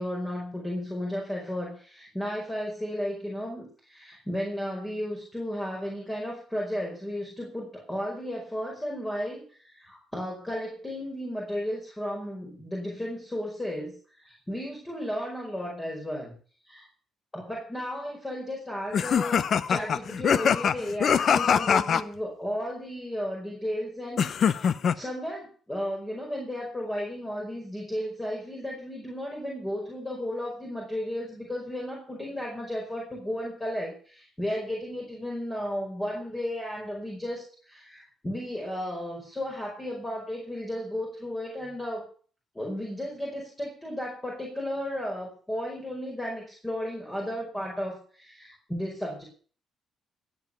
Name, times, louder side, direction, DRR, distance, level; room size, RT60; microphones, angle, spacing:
voice 1, 0.0-16.3 16.6-16.9 17.3-42.0 42.5-49.2, equal, 15° left, -2 dB, 5.1 m, -34 dB
sound 1, 18.9-22.0 24.2-24.9, left 7 dB, 55° left, 0.8 m, -23 dB
16.5 x 8.1 x 6.8 m, 0.43 s
cardioid pair, 90°, 0 cm